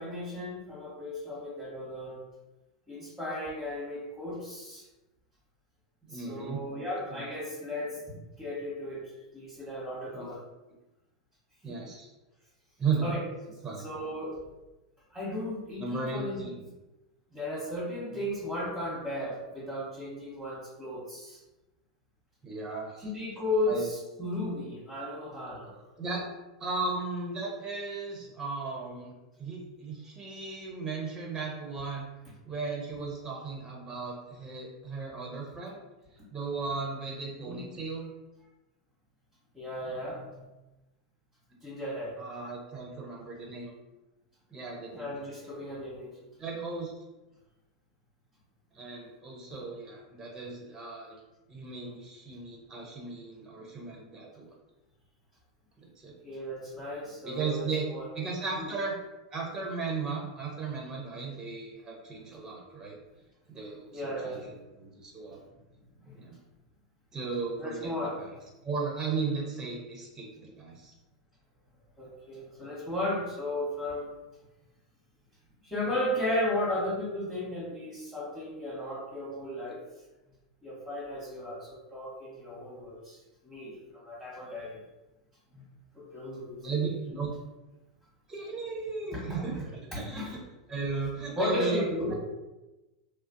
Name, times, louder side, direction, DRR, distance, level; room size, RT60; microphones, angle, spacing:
voice 1, 0.0-2.2 2.9-4.8 6.1-10.4 11.7-11.8 13.0-13.2 13.8-14.4 15.1-16.5 17.3-21.4 23.1-25.7 37.3-37.6 39.5-40.4 41.6-42.2 44.9-46.1 49.5-49.6 56.2-58.1 58.6-58.7 63.9-64.4 66.0-66.2 67.6-68.1 72.0-74.1 75.6-79.8 80.6-83.2 83.4-84.8 85.5-85.6 85.9-86.8 89.1-89.2 89.9-90.3 91.4-92.1, left 1 dB, ahead, -7 dB, 0.9 m, -35 dB
voice 2, 6.1-6.6 7.1-7.2 10.1-10.3 11.6-12.1 12.8-13.1 13.6-13.9 15.8-16.7 22.4-23.1 23.7-23.9 26.0-26.3 26.6-32.1 32.5-35.8 36.3-38.1 42.2-43.7 44.5-45.6 46.4-46.9 48.7-51.2 51.5-54.5 55.8-56.1 57.2-57.9 58.1-58.9 59.3-63.0 63.5-65.4 66.1-66.4 67.1-67.9 68.2-68.4 68.6-70.9 86.6-87.3 88.3-90.4 90.7-91.8, right 4 dB, 15° right, -1 dB, 0.6 m, -36 dB
2.4 x 2.0 x 2.5 m, 1.1 s
hypercardioid pair, 90°, 3 cm